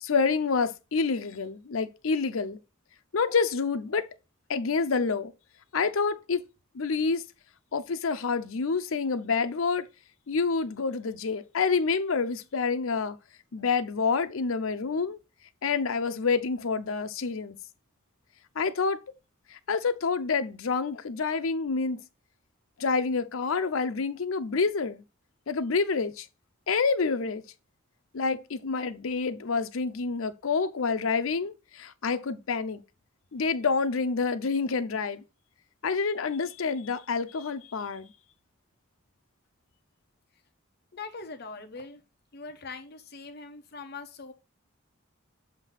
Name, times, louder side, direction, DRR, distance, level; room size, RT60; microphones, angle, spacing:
voice 1, 0.0-2.6 3.1-4.1 4.5-5.3 5.7-6.4 6.7-7.2 7.7-9.9 10.3-13.2 13.5-15.2 15.6-17.6 18.6-19.0 19.5-22.0 22.8-25.0 25.5-26.3 26.7-27.4 28.1-32.8 33.3-35.2 35.8-38.1, left 4 dB, 80° left, 0.6 m, -28 dB
voice 2, 40.9-42.0 42.3-44.3, left 4 dB, 50° left, 0.8 m, -42 dB
7.4 x 2.7 x 5.7 m
head